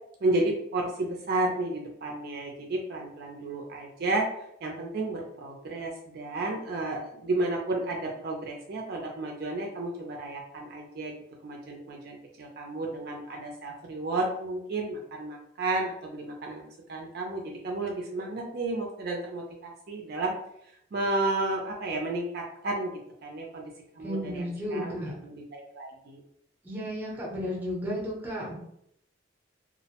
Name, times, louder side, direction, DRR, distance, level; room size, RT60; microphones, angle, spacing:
voice 1, 0.2-16.6 16.9-20.3 20.6-26.2, right 2 dB, 55° right, 0 dB, 0.4 m, -32 dB
voice 2, 24.0-25.1 26.6-28.6, equal, 10° right, -4 dB, 0.6 m, -33 dB
2.4 x 2.0 x 2.8 m, 0.74 s
head